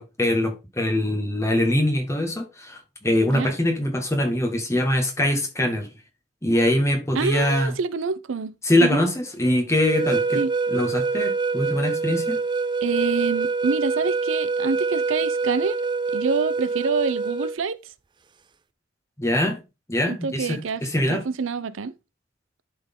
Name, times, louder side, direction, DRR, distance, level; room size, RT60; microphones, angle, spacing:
voice 1, 0.0-5.9 6.4-7.7 8.6-10.4 10.7-12.4 19.2-19.6 19.9-21.2, left 1 dB, 15° left, 1.8 m, -23 dB
voice 2, 7.2-8.5 8.8-9.0 10.3-10.5 12.8-15.8 16.1-17.8 20.1-20.8 21.1-21.9, right 5 dB, 75° right, 0.5 m, -26 dB
sound 1, 9.8-17.6, right 4 dB, 25° right, 0.4 m, -25 dB
11.0 x 4.4 x 3.7 m
head